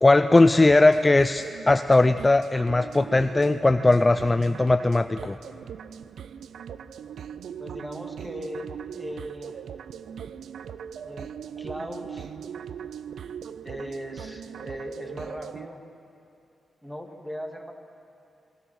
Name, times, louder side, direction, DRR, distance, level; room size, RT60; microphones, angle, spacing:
voice 1, 0.0-5.4, left 2 dB, 20° left, 10 dB, 0.4 m, -19 dB
sound 1, 0.6-15.7, right 8 dB, 85° right, 0.5 m, -40 dB
voice 2, 7.6-9.7 11.0-12.3 13.6-15.8 16.8-17.7, equal, 5° right, 2 dB, 2.3 m, -38 dB
29.5 x 20.5 x 6.4 m, 2.6 s
wide cardioid pair, 120°, 0 cm